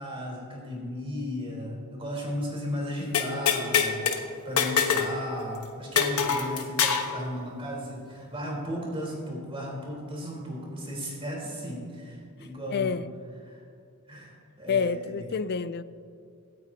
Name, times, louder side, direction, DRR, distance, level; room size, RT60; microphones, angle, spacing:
voice 1, 0.0-13.0 13.4-13.6 14.1-15.3, equal, 25° right, 3.7 m, -35 dB
sound 1, 3.1-4.2 4.6-5.1 5.4-5.5 6.0-7.1, left 7 dB, 75° left, 1.2 m, -24 dB
voice 2, 12.7-13.1 14.7-15.8, left 5 dB, 50° left, 0.4 m, -28 dB
25.5 x 9.2 x 2.8 m
head